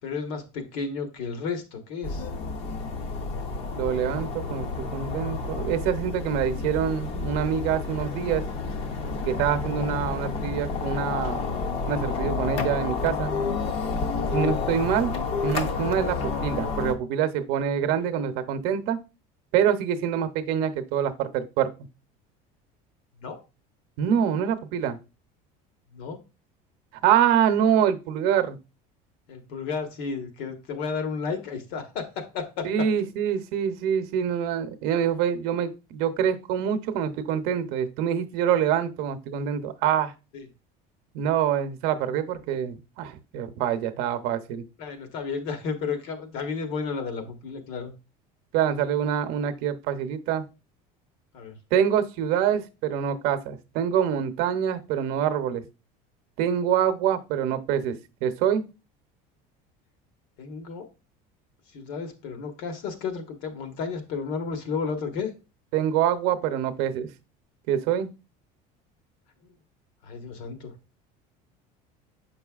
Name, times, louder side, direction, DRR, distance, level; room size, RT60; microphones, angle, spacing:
voice 1, 0.0-2.3 14.3-14.5 23.2-23.4 25.9-26.2 29.3-32.9 40.3-40.5 44.8-47.9 51.3-51.5 60.4-60.9 61.7-65.3 70.0-70.7, left 5 dB, 70° left, 6 dB, 1.4 m, -32 dB
sound 1, 2.0-16.9, left 4 dB, 35° left, 0.6 m, -30 dB
voice 2, 3.8-8.4 9.3-11.5 11.9-13.3 14.3-15.1 15.4-19.0 19.5-21.7 24.0-25.0 27.0-28.6 32.6-40.1 41.1-44.6 48.5-50.4 51.7-55.6 56.4-58.7 65.7-67.1 67.7-68.1, right 9 dB, 60° right, 9 dB, 0.7 m, -25 dB
7.6 x 5.4 x 2.4 m, 0.29 s
cardioid pair, 175°, 18 cm